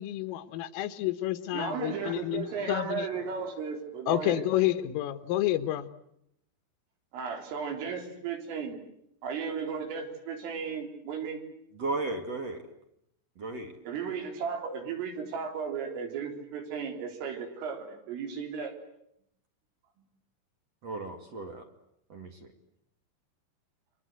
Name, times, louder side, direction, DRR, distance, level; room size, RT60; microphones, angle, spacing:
voice 1, 0.0-3.1 4.1-5.9, left 13 dB, 80° left, 10 dB, 3.8 m, -29 dB
voice 2, 1.5-4.5 7.1-8.8 9.2-11.4 13.8-18.8, right 6 dB, 75° right, 4 dB, 6.4 m, -35 dB
voice 3, 11.8-12.6 13.4-13.7 20.8-21.6 22.1-22.3, right 3 dB, 50° right, 5 dB, 2.1 m, -34 dB
30.0 x 24.5 x 8.1 m, 0.77 s
omnidirectional pair, 5.9 m